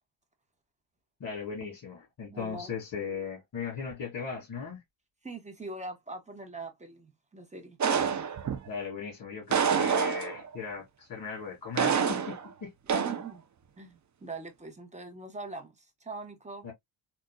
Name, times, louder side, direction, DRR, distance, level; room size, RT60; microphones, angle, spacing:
voice 1, 1.2-4.8 8.7-12.7 16.6-16.7, left 6 dB, 45° left, 2.2 m, -38 dB
voice 2, 2.3-2.7 5.2-7.8 12.9-13.4 13.8-16.7, right 3 dB, 15° right, 1.1 m, -42 dB
sound 1, 7.8-8.7 9.5-10.6 11.8-12.5 12.9-13.3, right 7 dB, 35° right, 0.6 m, -27 dB
3.7 x 2.5 x 2.2 m
cardioid pair, 90°, 49 cm